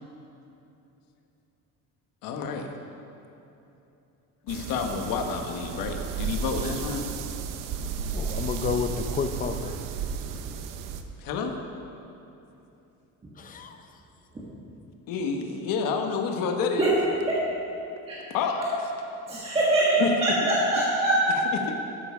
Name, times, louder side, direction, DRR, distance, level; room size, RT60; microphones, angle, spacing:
voice 1, 2.2-2.7 4.5-7.1 11.2-11.5 15.1-17.0 18.3-18.7 20.0-20.4 21.5-21.7, left 5 dB, 75° left, 4 dB, 1.2 m, -29 dB
sound 1, 4.5-11.0, right 6 dB, 70° right, 0.8 m, -33 dB
voice 2, 8.1-9.7 13.4-13.8, left 5 dB, 25° left, 7 dB, 0.6 m, -30 dB
voice 3, 19.3-21.5, right 1 dB, 15° right, -7 dB, 1.5 m, -23 dB
13.0 x 7.2 x 5.5 m, 2.9 s
cardioid pair, 165°, 33 cm